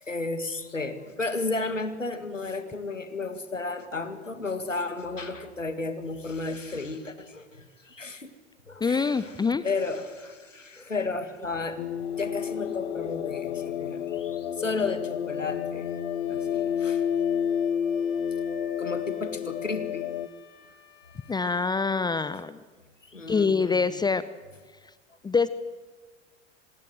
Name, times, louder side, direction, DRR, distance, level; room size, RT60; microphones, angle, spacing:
voice 1, 0.0-8.3 8.7-11.8 12.2-15.9 16.3-17.0 18.8-20.0 23.1-23.9, left 3 dB, 90° left, 10 dB, 2.1 m, -33 dB
voice 2, 8.8-9.6 21.3-22.6 23.3-24.2 25.2-25.5, left 4 dB, 10° left, 15 dB, 0.7 m, -25 dB
sound 1, 11.8-20.3, left 8 dB, 60° left, 1.2 m, -30 dB
Wind instrument woodwind instrument, 15.4-21.9, left 4 dB, 35° left, 6.4 m, -49 dB
26.5 x 20.5 x 7.8 m, 1.4 s
figure-of-eight pair, 85°, 37 cm